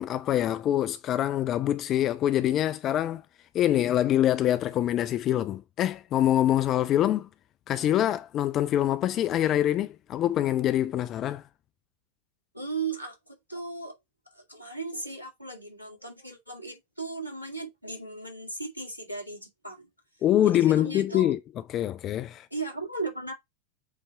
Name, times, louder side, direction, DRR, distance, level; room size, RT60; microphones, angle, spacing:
voice 1, 0.0-3.2 3.5-7.3 7.7-11.4 20.2-21.4 21.7-22.5, left 12 dB, 30° left, 0.5 m, -25 dB
voice 2, 12.5-14.0 14.3-19.9 20.5-21.4 22.5-23.3, right 3 dB, 90° left, 2.0 m, -36 dB
8.2 x 3.4 x 3.9 m
figure-of-eight pair, 90°, 0 cm